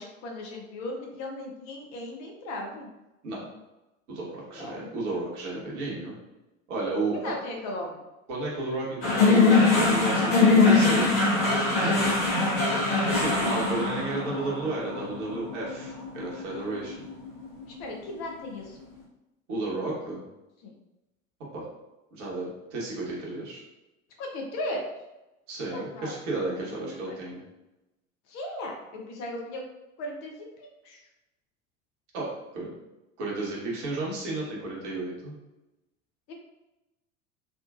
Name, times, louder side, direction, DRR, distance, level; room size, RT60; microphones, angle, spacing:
voice 1, 0.0-2.9 4.5-4.9 7.2-8.0 11.8-12.1 12.4-12.6 17.7-18.8 20.6-20.7 24.2-24.8 25.7-27.1 28.3-29.6 30.0-30.3 30.6-31.0 36.3-36.4, left 1 dB, 40° left, 1 dB, 0.7 m, -37 dB
voice 2, 4.1-6.2 6.7-7.3 8.3-11.3 13.1-17.1 19.5-20.2 21.5-21.7 22.1-23.6 25.5-27.4 32.1-32.7 33.2-35.3, right 2 dB, 60° right, -4 dB, 1.2 m, -33 dB
sound 1, 9.0-17.4, left 3 dB, 70° left, 1.1 m, -22 dB
3.6 x 2.4 x 2.4 m, 0.98 s
figure-of-eight pair, 75°, 40 cm